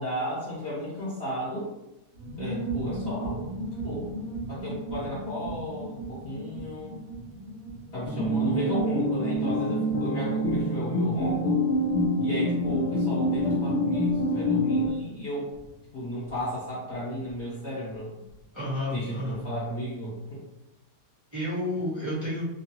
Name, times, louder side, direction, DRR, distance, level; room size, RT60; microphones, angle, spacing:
voice 1, 0.0-1.7 2.4-3.4 3.8-4.1 4.5-6.9 7.9-11.6 12.2-15.5 15.9-18.1 18.9-20.4, equal, 45° left, -9 dB, 1.0 m, -34 dB
sound 1, 2.1-18.4 18.7-18.8 19.0-19.4, right 2 dB, 60° right, 0.8 m, -39 dB
sound 2, 8.1-14.9, equal, 70° left, 0.6 m, -26 dB
voice 2, 18.5-19.5 21.3-22.5, left 1 dB, 10° right, -9 dB, 1.0 m, -30 dB
3.0 x 2.3 x 2.9 m, 0.94 s
omnidirectional pair, 1.8 m